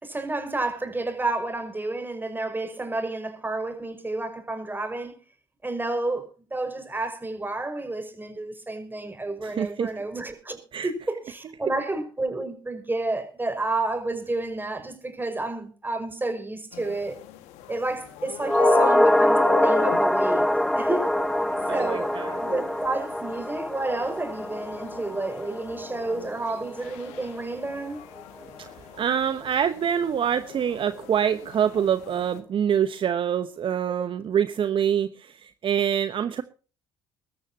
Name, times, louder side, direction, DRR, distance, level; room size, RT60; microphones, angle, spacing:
voice 1, 0.0-5.2 5.6-10.6 10.8-17.2 17.7-20.4 20.8-21.1 21.7-28.0, right 2 dB, 15° right, 5.4 m, -30 dB
voice 2, 9.4-9.9 10.7-10.9 21.7-22.4 29.0-36.4, right 8 dB, 50° right, 1.0 m, -25 dB
sound 1, 16.7-32.4, left 14 dB, 75° left, 1.8 m, -39 dB
sound 2, 18.4-26.9 27.2-27.3, left 1 dB, 5° left, 0.7 m, -24 dB
23.0 x 13.5 x 2.8 m
hypercardioid pair, 60°, 11 cm